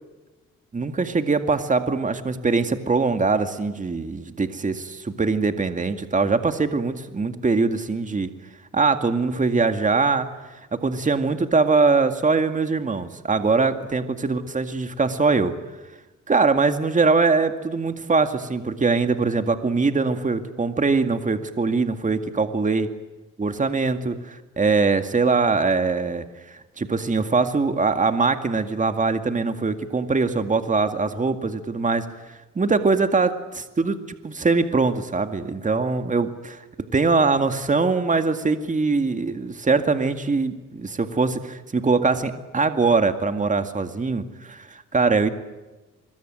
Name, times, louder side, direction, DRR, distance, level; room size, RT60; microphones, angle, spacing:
voice 1, 0.7-8.3 8.7-10.3 10.7-15.5 16.3-22.9 23.4-24.2 24.6-32.1 32.6-33.3 33.8-34.0 34.2-36.6 36.9-45.3, right 4 dB, 25° right, 7 dB, 2.1 m, -22 dB
25.0 x 22.0 x 9.2 m, 1.1 s
cardioid pair, 90°, 30 cm